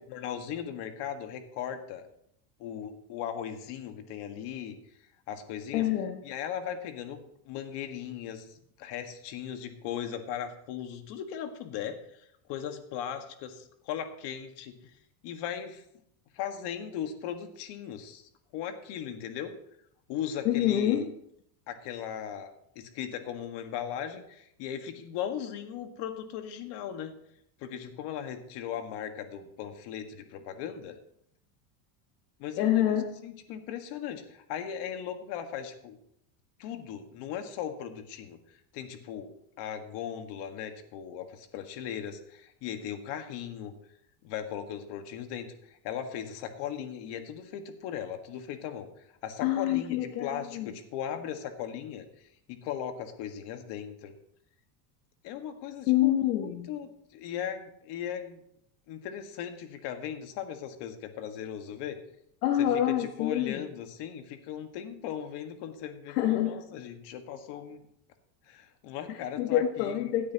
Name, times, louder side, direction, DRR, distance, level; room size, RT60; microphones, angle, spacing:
voice 1, 0.1-2.0 2.6-4.8 5.3-5.9 6.2-14.7 15.2-15.8 16.3-19.5 20.1-21.0 21.7-27.2 27.6-31.0 32.4-32.9 33.2-36.0 36.6-38.4 38.7-43.7 44.2-45.5 45.8-48.9 49.2-54.1 55.2-58.4 58.9-62.0 62.9-67.8 68.5-70.0, left 9 dB, 60° left, 7 dB, 1.7 m, -38 dB
voice 2, 5.7-6.2 20.4-21.1 32.6-33.1 49.4-50.7 55.9-56.7 62.4-63.6 66.1-66.6 69.1-70.3, left 12 dB, 80° left, 4 dB, 1.3 m, -27 dB
16.5 x 9.4 x 3.0 m, 0.72 s
supercardioid pair, 105°, 47 cm